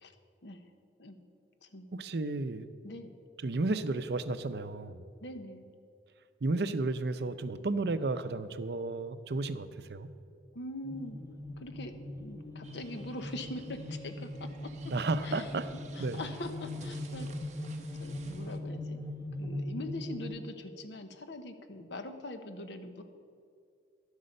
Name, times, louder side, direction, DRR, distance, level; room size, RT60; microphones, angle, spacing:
voice 1, 1.9-2.7 3.4-5.0 6.4-10.1 14.9-15.7 16.0-16.2, right 3 dB, 65° right, 11 dB, 0.6 m, -33 dB
voice 2, 5.2-5.6 10.5-11.2 11.6-14.5 15.2-15.5 15.9-17.3 18.0-19.0 19.4-23.0, left 1 dB, 80° left, 8 dB, 1.0 m, -42 dB
sound 1, 10.8-20.3, left 1 dB, 20° left, 0.8 m, -40 dB
sound 2, 12.6-18.6, right 5 dB, 40° right, 0.9 m, -56 dB
11.5 x 8.2 x 6.5 m, 2.3 s
head